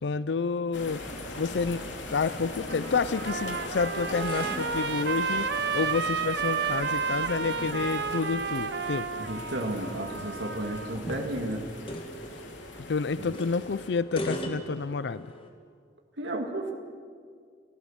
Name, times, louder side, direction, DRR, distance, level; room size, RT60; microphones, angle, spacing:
voice 1, 0.0-1.0 1.4-9.1 12.9-15.3, left 4 dB, 65° left, 16 dB, 0.5 m, -29 dB
sound 1, 0.7-13.9, left 2 dB, 85° left, 2.8 m, -40 dB
Trumpet, 2.5-11.0, right 5 dB, 60° right, 0.9 m, -32 dB
sound 2, 2.6-15.5, equal, 30° left, 1.9 m, -42 dB
voice 2, 9.2-11.7 13.2-13.4 16.2-16.7, right 1 dB, 75° right, 2 dB, 2.1 m, -33 dB
29.5 x 15.5 x 7.3 m, 2.1 s
head